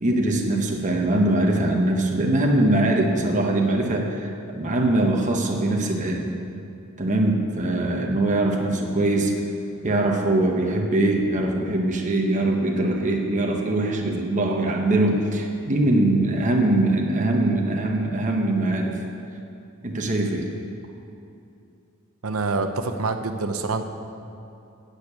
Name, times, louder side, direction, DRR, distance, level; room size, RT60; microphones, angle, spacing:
voice 1, 0.0-6.3 7.0-9.4 9.8-19.0 19.8-20.5, right 1 dB, 35° right, 1 dB, 1.0 m, -22 dB
voice 2, 22.2-23.9, right 3 dB, 85° right, 8 dB, 0.8 m, -26 dB
9.1 x 6.7 x 8.4 m, 2.7 s
head